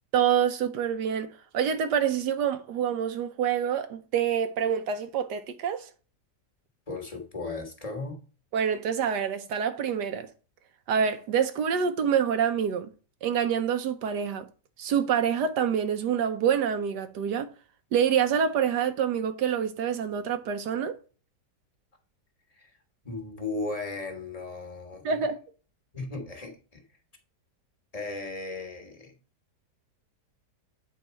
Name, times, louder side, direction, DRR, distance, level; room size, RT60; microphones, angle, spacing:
voice 1, 0.1-1.3 1.5-5.9 8.5-10.3 10.9-12.9 13.2-14.5 14.8-17.5 17.9-21.0 25.0-25.4, right 8 dB, 80° right, 1.3 m, -26 dB
voice 2, 6.9-8.2 22.6-22.7 23.0-25.2 25.9-26.8 27.9-29.1, left 3 dB, 20° left, 1.6 m, -36 dB
8.2 x 4.7 x 4.3 m
omnidirectional pair, 1.8 m